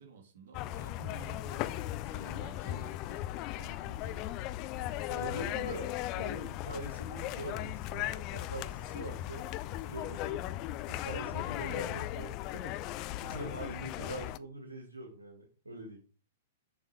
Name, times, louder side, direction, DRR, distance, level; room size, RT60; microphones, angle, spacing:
voice 1, 0.0-4.4, right 5 dB, 50° right, 2 dB, 2.3 m, -52 dB
sound 1, 0.5-14.4, left 15 dB, 35° left, 0.3 m, -37 dB
voice 2, 4.8-9.4 9.7-10.5 10.9-16.0, right 2 dB, 80° right, 0 dB, 1.7 m, -44 dB
6.9 x 4.8 x 4.6 m, 0.38 s
figure-of-eight pair, 105°, 0 cm